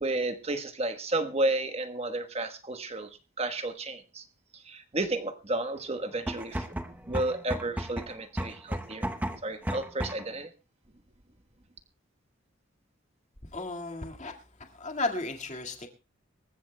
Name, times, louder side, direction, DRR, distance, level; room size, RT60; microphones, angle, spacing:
voice 1, 0.0-3.1 3.4-4.2 4.7-6.7 7.1-9.1 9.4-10.5, right 2 dB, 30° right, 8 dB, 1.2 m, -32 dB
sound 1, 6.1-10.4, right 1 dB, 10° right, 0.8 m, -34 dB
voice 2, 13.5-14.3 14.7-15.9, left 2 dB, 35° left, 4 dB, 2.0 m, -34 dB
25.5 x 14.5 x 2.2 m, 0.30 s
head